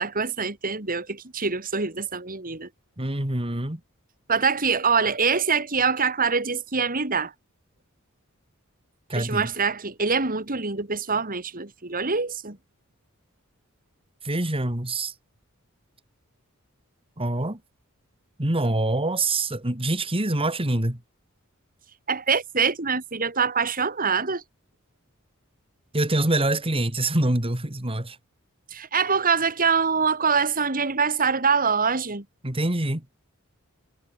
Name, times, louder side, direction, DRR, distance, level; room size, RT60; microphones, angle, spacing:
voice 1, 0.0-2.7 4.3-7.3 9.1-12.6 22.1-24.4 28.7-32.2, right 5 dB, 40° right, 3.1 m, -24 dB
voice 2, 3.0-3.8 9.1-9.5 14.2-15.1 17.2-17.6 18.4-21.0 25.9-28.2 32.4-33.1, right 2 dB, 25° right, 2.6 m, -25 dB
head